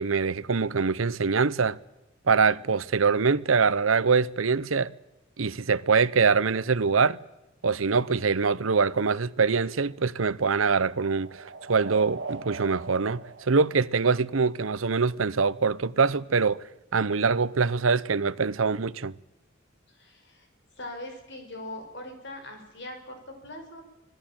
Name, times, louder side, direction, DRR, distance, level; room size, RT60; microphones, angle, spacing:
voice 1, 0.0-1.8 2.3-4.9 5.4-7.2 7.6-16.6 16.9-19.1, right 5 dB, 85° right, 0.8 m, -24 dB
sound 1, 9.7-14.5, right 4 dB, 60° right, 2.2 m, -41 dB
voice 2, 19.9-20.5 20.8-23.8, left 1 dB, 60° left, 5.6 m, -41 dB
25.5 x 18.0 x 8.9 m
head